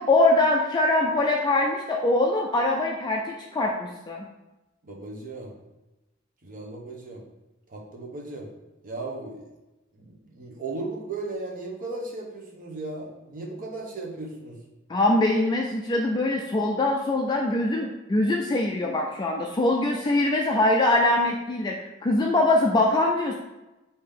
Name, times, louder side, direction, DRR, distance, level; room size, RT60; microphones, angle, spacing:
voice 1, 0.0-4.3 14.9-21.8 22.0-23.3, left 2 dB, 20° left, 0 dB, 0.3 m, -23 dB
voice 2, 4.8-5.5 6.4-7.2 7.7-8.5 8.8-9.4 9.9-14.6, right 2 dB, 45° right, -1 dB, 0.9 m, -36 dB
5.1 x 2.8 x 3.6 m, 1.0 s
head